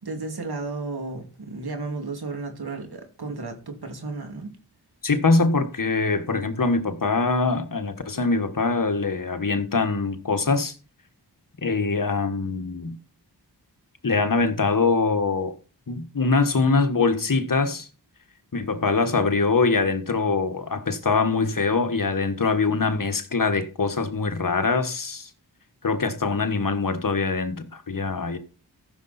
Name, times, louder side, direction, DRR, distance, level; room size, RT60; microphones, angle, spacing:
voice 1, 0.0-4.6, right 3 dB, 65° right, 2.6 m, -33 dB
voice 2, 5.0-10.7 11.6-13.0 14.0-15.6 15.9-17.9 18.5-25.3 25.8-28.4, left 4 dB, 50° left, 1.4 m, -23 dB
14.5 x 6.7 x 4.2 m
wide cardioid pair, 55°, 41 cm